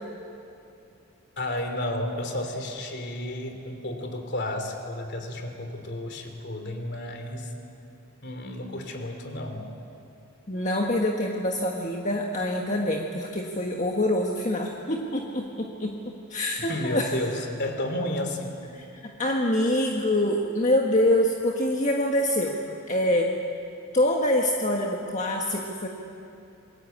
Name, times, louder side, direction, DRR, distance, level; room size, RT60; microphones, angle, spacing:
voice 1, 1.4-7.5 8.2-9.7 16.6-18.6, left 1 dB, 50° left, 5 dB, 3.3 m, -32 dB
voice 2, 10.5-17.1 18.7-22.6 22.9-23.3 23.9-25.9, left 1 dB, 35° left, 0 dB, 1.6 m, -25 dB
28.0 x 22.0 x 8.6 m, 2.7 s
head